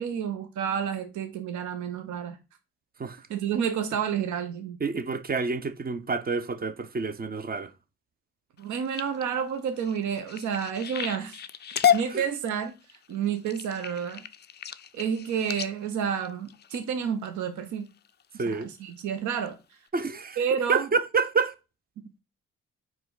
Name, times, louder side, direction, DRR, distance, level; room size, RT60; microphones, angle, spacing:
voice 1, 0.0-2.4 3.3-4.8 8.6-11.4 11.9-14.2 14.9-17.9 18.3-19.6 20.4-20.9, right 7 dB, 65° right, 0.7 m, -30 dB
voice 2, 4.8-7.7 12.1-12.2 18.4-18.7 19.9-20.4 20.7-21.5, right 4 dB, 30° right, 0.6 m, -28 dB
sound 1, 8.6-17.3 17.9-18.2 18.6-19.0 19.4-19.5 19.9-20.0, left 9 dB, 35° left, 0.4 m, -32 dB
4.5 x 2.3 x 3.8 m
supercardioid pair, 60°, 31 cm